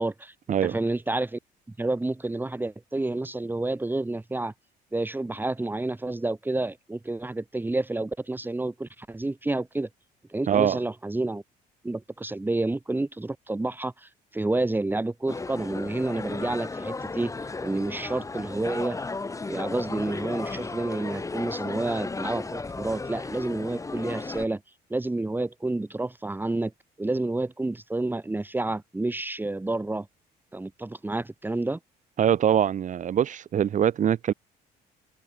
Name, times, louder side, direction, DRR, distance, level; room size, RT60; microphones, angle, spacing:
voice 1, 0.0-1.4 1.8-4.5 4.9-9.9 10.3-11.4 11.8-17.3 17.6-19.0 19.5-24.6 24.9-26.7 27.0-30.1 30.5-31.8, right 2 dB, 10° right, 3.1 m, -29 dB
voice 2, 10.5-10.8 32.2-34.3, right 9 dB, 45° right, 1.7 m, -23 dB
sound 1, 15.3-24.5, left 3 dB, 20° left, 2.8 m, -35 dB
cardioid pair, 110°, 17 cm